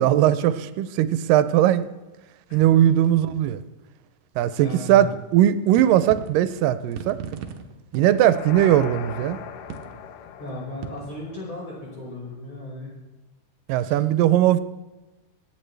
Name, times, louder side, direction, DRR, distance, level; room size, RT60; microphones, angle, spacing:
voice 1, 0.0-1.9 2.5-3.6 4.4-7.2 7.9-9.4 13.7-14.6, right 12 dB, 85° right, 13 dB, 2.2 m, -19 dB
voice 2, 2.5-3.0 4.6-5.1 10.4-12.9 13.8-14.0, left 1 dB, 35° left, -5 dB, 5.7 m, -36 dB
sound 1, 5.4-5.5 5.7-6.4 6.9-8.3 8.7-8.8 9.7-10.0 10.8-11.2, right 7 dB, 70° right, 1.8 m, -37 dB
sound 2, 8.0-12.1, left 8 dB, 80° left, 2.3 m, -39 dB
24.5 x 8.8 x 3.3 m, 1.1 s
omnidirectional pair, 3.8 m